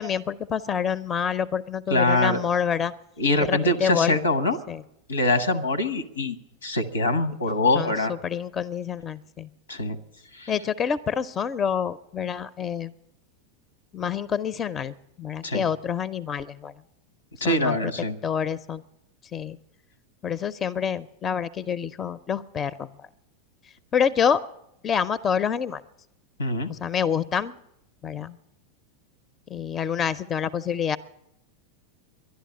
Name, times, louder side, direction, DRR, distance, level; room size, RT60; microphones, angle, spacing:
voice 1, 0.0-2.9 3.4-4.2 4.7-4.8 7.8-7.9 8.2-9.5 10.5-12.9 13.9-16.7 17.4-17.8 18.2-18.8 19.3-19.6 20.2-22.9 23.9-24.4 24.8-25.8 26.7-27.5 28.0-28.4 29.5-31.0, left 7 dB, 30° left, 18 dB, 0.5 m, -27 dB
voice 2, 1.9-2.4 3.2-4.6 5.1-6.4 6.6-8.1 9.7-10.0 10.4-10.5 15.4-15.6 17.4-18.2 26.4-26.7, left 2 dB, 90° left, 14 dB, 1.1 m, -23 dB
11.5 x 11.0 x 9.5 m, 0.82 s
hypercardioid pair, 90°, 0 cm